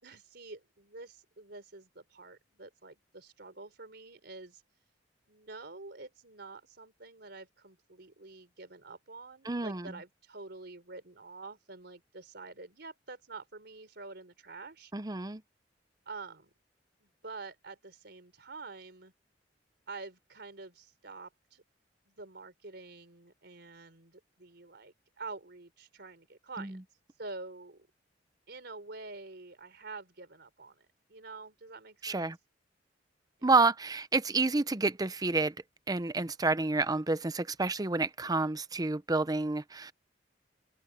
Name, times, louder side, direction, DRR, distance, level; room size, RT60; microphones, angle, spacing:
voice 1, 0.0-4.6 5.3-14.9 16.1-16.5 17.0-19.1 19.9-21.6 22.1-26.8 27.2-27.9 28.5-32.3, right 3 dB, 65° right, 4.2 m, -47 dB
voice 2, 9.4-9.9 14.9-15.4 26.6-26.8 32.0-32.4 33.4-35.5 35.9-39.9, right 3 dB, 20° right, 0.7 m, -29 dB
open air
head